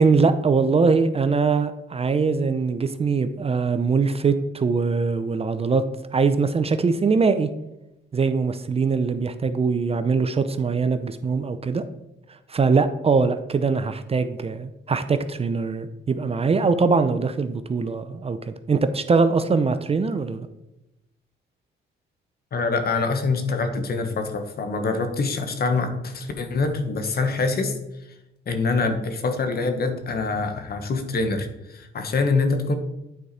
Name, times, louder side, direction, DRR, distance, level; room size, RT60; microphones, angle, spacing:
voice 1, 0.0-5.8 6.1-7.5 8.1-11.9 12.3-20.5, right 4 dB, 30° right, 11 dB, 0.6 m, -22 dB
voice 2, 22.5-27.8 28.5-32.7, left 3 dB, 50° left, 7 dB, 1.2 m, -25 dB
9.1 x 4.8 x 4.2 m, 0.92 s
cardioid pair, 90°, 20 cm